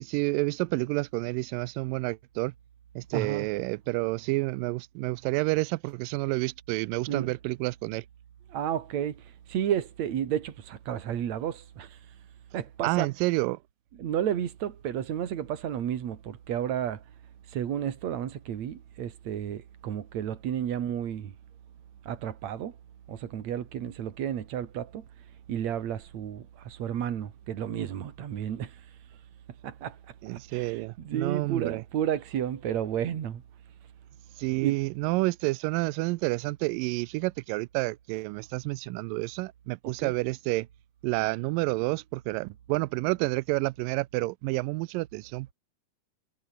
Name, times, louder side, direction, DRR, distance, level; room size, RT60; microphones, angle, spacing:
voice 1, 0.0-2.5 3.0-8.1 12.8-13.6 30.2-31.8 34.4-40.7 41.0-45.5, right 22 dB, 90° right, 1.9 m, -29 dB
voice 2, 3.1-3.5 7.1-7.3 8.5-9.2 9.5-12.0 12.5-13.1 14.0-17.0 17.5-21.3 22.1-22.7 23.1-25.0 25.5-28.7 29.6-30.0 30.3-33.4 34.5-34.8 39.8-40.1, right 10 dB, 50° right, 2.8 m, -32 dB
omnidirectional pair, 4.5 m